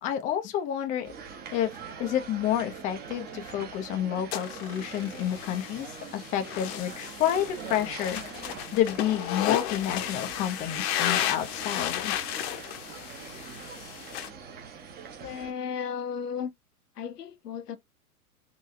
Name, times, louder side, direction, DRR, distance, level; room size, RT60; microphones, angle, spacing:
voice 1, 0.0-1.1 1.5-8.4 8.7-12.1, left 11 dB, 15° left, 0.5 m, -29 dB
sound 1, 1.0-15.5, right 6 dB, 20° right, 0.9 m, -44 dB
sound 2, 4.3-14.3, left 11 dB, 40° left, 0.9 m, -33 dB
voice 2, 15.2-16.5 17.0-17.8, left 7 dB, 85° left, 1.0 m, -34 dB
4.1 x 2.7 x 2.5 m
hypercardioid pair, 120°, 46 cm